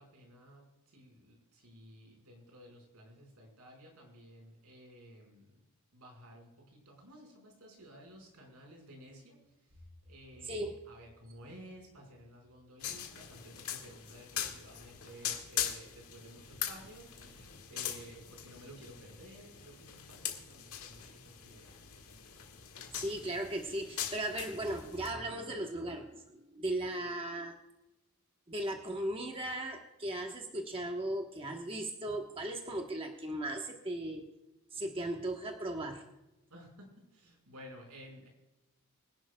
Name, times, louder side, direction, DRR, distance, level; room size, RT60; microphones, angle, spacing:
voice 1, 0.0-5.6 5.9-21.8 36.5-38.3, equal, 85° right, 1 dB, 4.9 m, -54 dB
sound 1, 12.8-25.1, left 9 dB, 80° left, 1.8 m, -42 dB
voice 2, 23.0-27.6 28.5-34.3 34.7-36.1, right 1 dB, 25° right, 2 dB, 1.1 m, -37 dB
24.5 x 11.0 x 2.2 m, 1.0 s
head